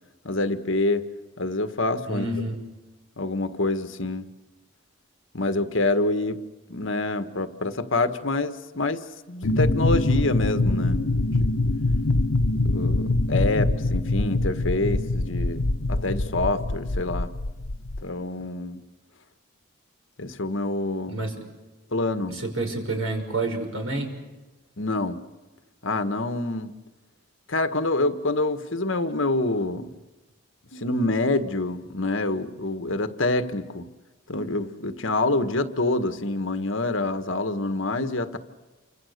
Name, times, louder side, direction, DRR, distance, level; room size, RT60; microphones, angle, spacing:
voice 1, 0.2-1.0 1.4-2.3 3.2-4.3 5.3-6.4 6.7-9.0 9.3-11.5 12.6-17.3 18.0-18.8 20.2-21.2 21.9-22.4 24.8-25.2 25.8-26.7 27.5-29.9 30.7-33.9 34.3-38.4, left 2 dB, 65° left, 9 dB, 1.6 m, -26 dB
voice 2, 2.1-2.6 21.1-21.4 22.3-24.1, right 2 dB, 75° right, 3 dB, 6.0 m, -29 dB
sound 1, 9.4-18.0, left 2 dB, 80° left, 1.0 m, -24 dB
29.0 x 25.5 x 6.7 m, 1.2 s
head